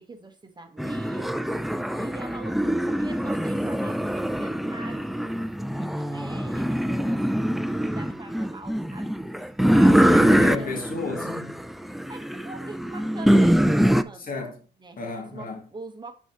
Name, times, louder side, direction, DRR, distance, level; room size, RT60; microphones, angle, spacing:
voice 1, 0.0-1.3 1.9-5.1 5.4-9.1 9.4-9.5 9.8-10.7 11.9-14.3 14.8-15.0 15.3-16.1, right 3 dB, 20° right, 1.2 m, -43 dB
sound 1, 0.8-14.0, equal, ahead, 0.4 m, -23 dB
voice 2, 10.0-11.6 14.3-14.6 15.0-15.6, left 3 dB, 45° left, 2.4 m, -32 dB
10.5 x 4.6 x 3.0 m
cardioid pair, 90°, 20 cm